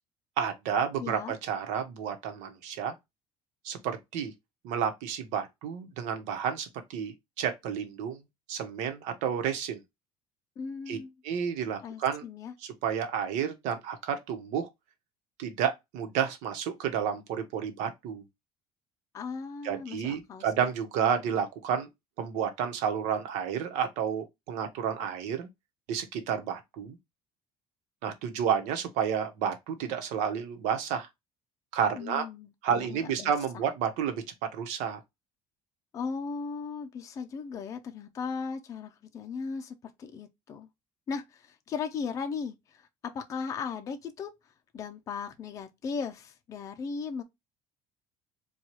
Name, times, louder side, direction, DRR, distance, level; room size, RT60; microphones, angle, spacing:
voice 1, 0.4-2.9 3.6-4.3 4.6-8.2 8.5-9.8 10.9-11.0 11.2-12.2 12.6-14.7 15.4-18.2 19.6-21.9 22.2-25.5 25.9-27.0 28.0-31.1 31.7-32.3 32.6-34.2 34.5-35.0, right 8 dB, 80° right, 1.0 m, -31 dB
voice 2, 1.0-1.3 10.6-11.1 11.8-12.5 19.1-20.5 31.9-33.3 35.9-40.7 41.1-42.9 43.1-44.3 44.7-47.2, left 5 dB, 25° left, 0.5 m, -37 dB
4.4 x 2.3 x 3.0 m
cardioid pair, 170°, 12 cm